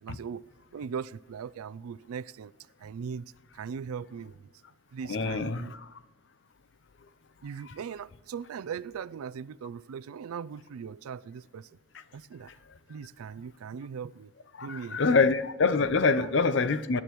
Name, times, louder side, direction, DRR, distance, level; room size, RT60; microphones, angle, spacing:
voice 1, 0.0-2.5 2.8-3.2 3.5-4.5 4.9-5.7 7.4-11.8 12.1-12.5 12.9-14.3 14.6-15.2 16.2-16.3, right 6 dB, 90° right, 0.4 m, -39 dB
voice 2, 5.1-6.0 7.7-7.8 11.9-12.0 12.5-12.6 14.5-17.0, left 4 dB, 55° left, 0.6 m, -26 dB
20.5 x 9.9 x 3.1 m
head